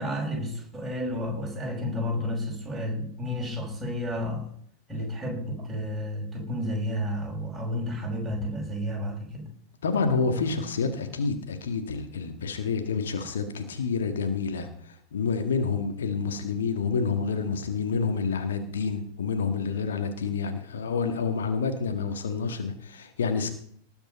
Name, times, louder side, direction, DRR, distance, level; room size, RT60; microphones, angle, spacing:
voice 1, 0.0-4.5 4.9-9.5, left 1 dB, 5° right, -3 dB, 6.2 m, -31 dB
voice 2, 9.8-14.7 15.1-23.5, left 5 dB, 65° left, 6 dB, 1.7 m, -28 dB
19.5 x 7.2 x 5.4 m, 0.64 s
figure-of-eight pair, 90°, 0 cm